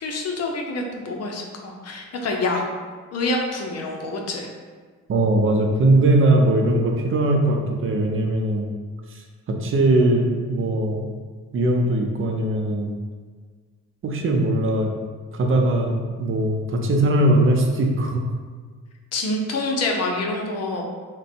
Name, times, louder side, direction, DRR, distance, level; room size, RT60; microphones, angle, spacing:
voice 1, 0.0-2.6 3.1-4.5 19.1-20.8, left 2 dB, 55° left, 1 dB, 0.7 m, -26 dB
voice 2, 5.1-8.7 9.6-11.1 11.5-12.9 14.0-14.9 15.3-18.2, right 1 dB, 45° right, 2 dB, 0.6 m, -20 dB
3.8 x 2.2 x 4.3 m, 1.5 s
cardioid pair, 90°, 30 cm